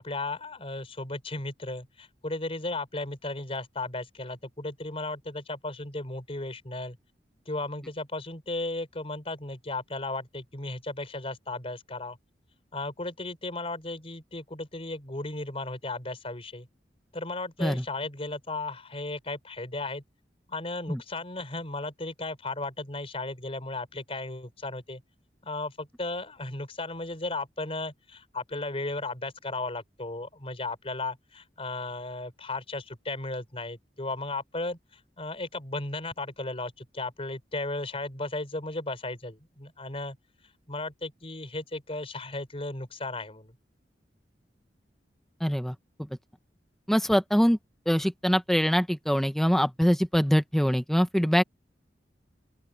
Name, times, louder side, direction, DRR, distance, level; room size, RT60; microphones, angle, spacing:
voice 1, 0.0-7.0 7.5-12.2 12.7-16.7 17.1-20.0 20.5-25.0 25.4-40.2 40.7-43.5, left 2 dB, 35° left, 4.1 m, -35 dB
voice 2, 45.4-45.7 46.9-47.6 47.9-51.4, equal, ahead, 1.0 m, -23 dB
open air
head